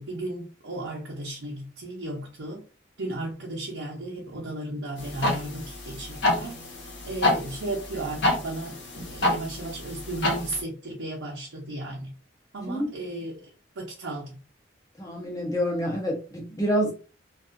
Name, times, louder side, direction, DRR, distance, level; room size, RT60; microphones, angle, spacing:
voice 1, 0.0-2.6 3.0-6.6 7.0-12.1 12.5-13.4 13.8-14.4, right 1 dB, 80° right, 0.7 m, -35 dB
sound 1, 5.0-10.6, left 1 dB, 60° left, 0.9 m, -28 dB
voice 2, 15.0-16.9, equal, 15° left, 0.7 m, -27 dB
2.6 x 2.3 x 2.4 m
head